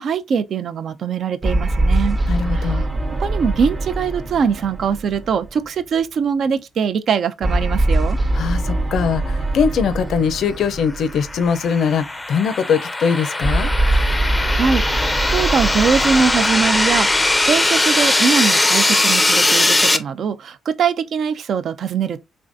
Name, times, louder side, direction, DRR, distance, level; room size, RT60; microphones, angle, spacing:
voice 1, 0.0-2.2 2.5-2.9 3.2-8.2 14.2-22.2, right 6 dB, 60° right, 0.4 m, -22 dB
sound 1, 1.4-6.0 7.4-11.8 13.4-18.0, right 2 dB, 30° right, 0.7 m, -23 dB
voice 2, 2.3-2.8 8.3-13.7, left 6 dB, 70° left, 0.5 m, -21 dB
sound 2, 11.0-20.0, left 2 dB, 15° left, 0.5 m, -19 dB
3.6 x 3.2 x 2.5 m
cardioid pair, 90°, 0 cm